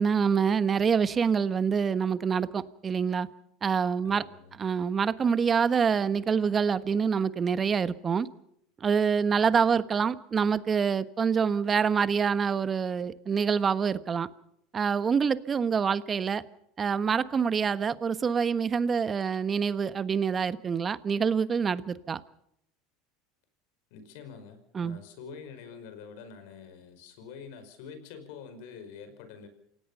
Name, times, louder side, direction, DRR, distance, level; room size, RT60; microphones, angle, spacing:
voice 1, 0.0-3.3 3.6-4.2 4.6-8.3 8.8-14.3 14.7-16.4 16.8-22.2 24.7-25.0, right 6 dB, 30° right, 14 dB, 1.3 m, -26 dB
voice 2, 4.0-4.5 9.5-9.7 23.9-29.5, left 6 dB, 70° left, 10 dB, 5.3 m, -46 dB
28.5 x 17.5 x 5.6 m, 0.74 s
hypercardioid pair, 90°, 0 cm